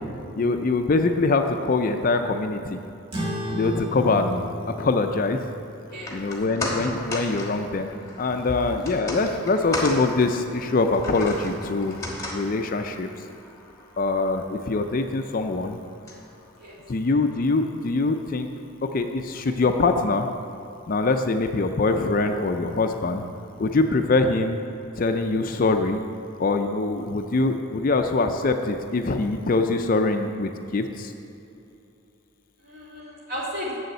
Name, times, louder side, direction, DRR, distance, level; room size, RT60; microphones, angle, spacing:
voice 1, 0.4-2.8 3.5-5.4 6.1-7.9 8.2-12.0 12.3-13.1 14.0-15.8 16.9-18.5 18.8-20.3 20.9-23.2 23.6-24.6 25.0-26.0 26.4-31.1, left 3 dB, 40° left, 6 dB, 0.4 m, -23 dB
sound 1, 3.1-8.0, equal, 25° right, 1.5 m, -34 dB
sound 2, 5.9-18.3 18.6-18.7, left 2 dB, 15° left, 1.2 m, -36 dB
voice 2, 5.9-6.3 8.4-8.5 9.0-9.1 16.5-16.8 32.6-33.8, equal, 45° right, -5 dB, 2.4 m, -35 dB
7.0 x 6.7 x 7.8 m, 2.8 s
head